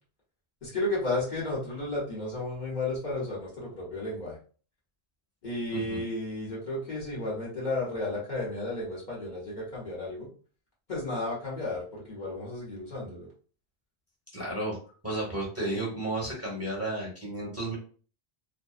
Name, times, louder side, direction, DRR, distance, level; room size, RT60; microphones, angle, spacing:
voice 1, 0.6-4.4 5.4-10.3 10.9-13.3, left 2 dB, 50° left, -6 dB, 1.0 m, -33 dB
voice 2, 5.7-6.0 14.3-14.8 15.0-17.8, right 1 dB, 15° right, -5 dB, 0.9 m, -32 dB
2.6 x 2.1 x 2.3 m, 0.40 s
omnidirectional pair, 1.0 m